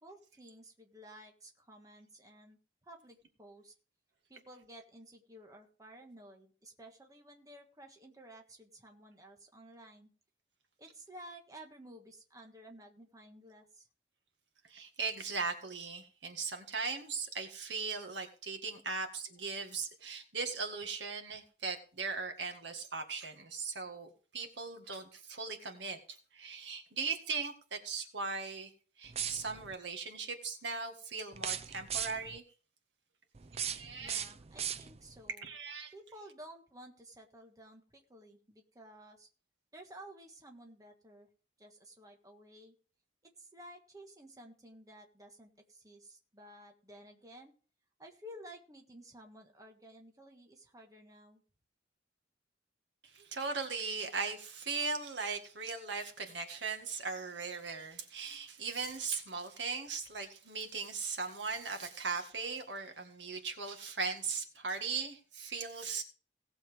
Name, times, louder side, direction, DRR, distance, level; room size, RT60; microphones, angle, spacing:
voice 1, 0.0-2.6 2.8-3.7 4.3-10.1 10.8-13.9 34.0-35.5 35.9-39.3 39.7-41.3 41.6-42.7 43.4-47.5 48.0-51.4, right 1 dB, 20° right, 2 dB, 1.5 m, -54 dB
voice 2, 14.7-28.7 29.0-32.4 33.7-34.2 35.4-35.9 53.1-66.0, right 4 dB, 80° right, 5 dB, 1.9 m, -38 dB
sound 1, 29.1-29.7 31.3-32.4 33.3-35.2, right 9 dB, 35° right, 0.5 m, -39 dB
18.0 x 7.1 x 3.6 m, 0.38 s
head